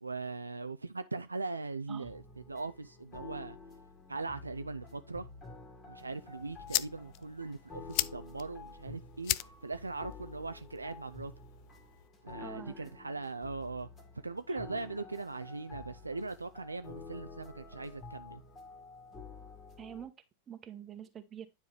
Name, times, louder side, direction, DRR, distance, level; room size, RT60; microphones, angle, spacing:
voice 1, 0.0-2.2 2.5-3.6 4.1-5.3 5.9-9.4 9.6-11.3 12.2-13.9 14.2-18.4, right 3 dB, 80° right, 0.4 m, -40 dB
sound 1, 2.0-20.1, left 3 dB, 25° left, 1.9 m, -50 dB
sound 2, 6.1-12.1, left 19 dB, 45° left, 0.3 m, -39 dB
voice 2, 12.4-12.9 14.5-14.6 19.8-20.1 20.5-21.5, right 9 dB, 25° right, 1.1 m, -46 dB
9.8 x 4.7 x 3.3 m
figure-of-eight pair, 90°, 0 cm